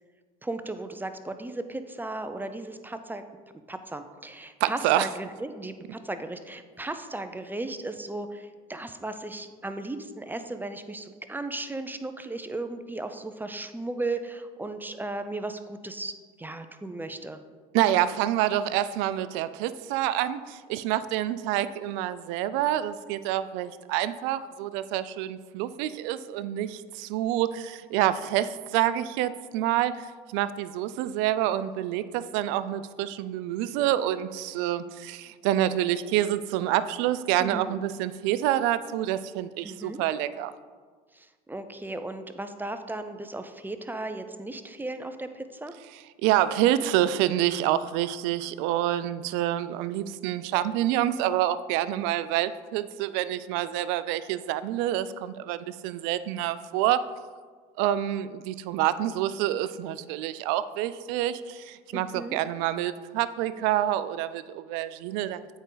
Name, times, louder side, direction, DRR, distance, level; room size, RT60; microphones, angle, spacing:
voice 1, 0.4-3.2 3.7-17.4 37.4-37.8 39.6-40.0 41.1-45.7 61.9-62.4, right 2 dB, 10° right, 9 dB, 0.5 m, -36 dB
voice 2, 4.6-5.1 17.7-40.5 46.2-57.0 57.8-65.4, right 12 dB, 75° right, 14 dB, 0.4 m, -27 dB
8.0 x 5.1 x 3.9 m, 1.5 s
supercardioid pair, 85°, 19 cm